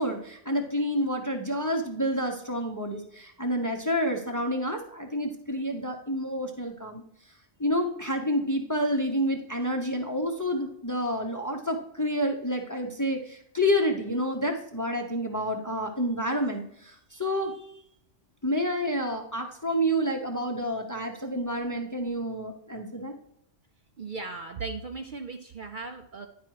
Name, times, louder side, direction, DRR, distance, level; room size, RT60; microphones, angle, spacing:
voice 1, 0.0-7.0 7.6-17.5 18.4-23.1, equal, 20° left, 3 dB, 0.7 m, -29 dB
voice 2, 24.0-26.3, right 4 dB, 50° right, 5 dB, 0.7 m, -37 dB
10.0 x 4.7 x 4.6 m, 0.73 s
omnidirectional pair, 1.3 m